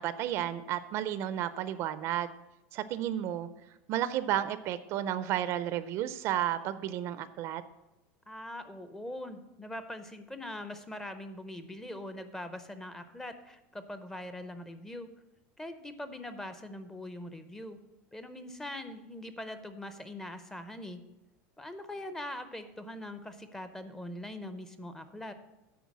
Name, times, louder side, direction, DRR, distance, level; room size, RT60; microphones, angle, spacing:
voice 1, 0.0-2.3 2.7-3.5 3.9-7.6, right 12 dB, 45° right, 14 dB, 0.4 m, -32 dB
voice 2, 8.3-15.1 15.6-17.8 18.1-21.0 21.6-25.3, left 1 dB, 5° left, 10 dB, 0.5 m, -42 dB
9.4 x 4.5 x 7.2 m, 0.98 s
supercardioid pair, 150°, 7 cm